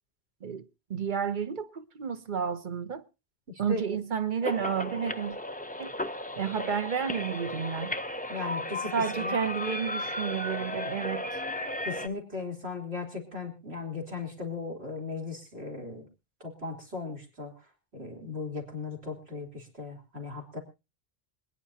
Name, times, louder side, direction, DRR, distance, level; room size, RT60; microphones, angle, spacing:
voice 1, 0.9-3.0 3.6-5.4 5.8-5.9 6.3-7.9 8.9-11.3, right 7 dB, 50° right, 1.0 m, -31 dB
voice 2, 3.7-4.0 8.3-9.5 11.8-16.1 16.4-17.5 17.9-20.6, left 4 dB, 75° right, 4.1 m, -37 dB
sound 1, 4.4-12.1, left 1 dB, 10° left, 0.5 m, -35 dB
26.0 x 10.0 x 2.8 m
omnidirectional pair, 1.1 m